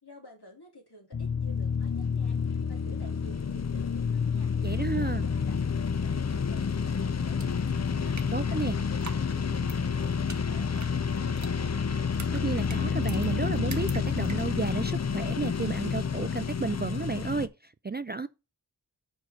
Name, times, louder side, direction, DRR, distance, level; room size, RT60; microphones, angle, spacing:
voice 1, 0.0-8.2 8.6-12.2, left 1 dB, 65° left, 3.0 m, -52 dB
sound 1, 1.1-17.5, left 6 dB, 40° left, 0.5 m, -29 dB
voice 2, 4.6-5.3 8.3-8.8 12.3-18.3, right 4 dB, 25° right, 0.3 m, -32 dB
sound 2, 7.4-14.8, right 4 dB, 45° right, 0.9 m, -48 dB
5.7 x 4.9 x 6.1 m
wide cardioid pair, 40°, 42 cm